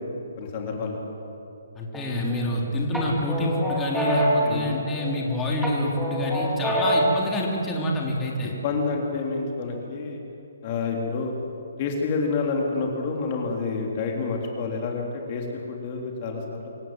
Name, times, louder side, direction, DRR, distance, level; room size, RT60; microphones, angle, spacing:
voice 1, 0.4-1.0 2.1-2.2 2.5-2.6 4.4-4.7 6.6-6.8 8.4-10.2 10.6-11.3 11.8-16.7, left 4 dB, 35° left, 0 dB, 3.4 m, -29 dB
voice 2, 1.8-8.5, left 1 dB, 15° left, -2 dB, 3.5 m, -27 dB
sound 1, 1.9-2.5 2.9-5.2 5.6-7.2, right 1 dB, ahead, 4.2 m, -26 dB
26.0 x 17.0 x 7.8 m, 2.7 s
figure-of-eight pair, 135°, 0 cm